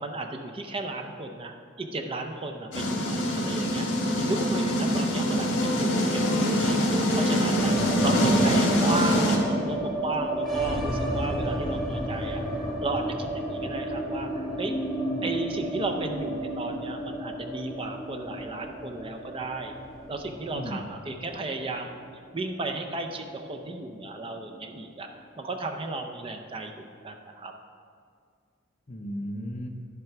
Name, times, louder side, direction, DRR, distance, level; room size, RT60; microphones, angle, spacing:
voice 1, 0.0-3.9 4.2-6.8 7.2-7.7 8.0-14.7 15.2-19.7 20.1-22.0 22.3-25.1 25.4-27.5, right 2 dB, 30° right, 4 dB, 0.5 m, -34 dB
sound 1, 2.7-9.4, equal, 65° left, 1.6 m, -24 dB
sound 2, 7.6-23.7 23.9-24.0 24.3-25.0, right 1 dB, 5° left, 1.2 m, -33 dB
voice 2, 7.7-8.5 15.1-15.3 20.5-20.8 28.9-29.7, equal, 35° left, 4 dB, 0.7 m, -35 dB
11.0 x 4.5 x 5.8 m, 2.2 s
head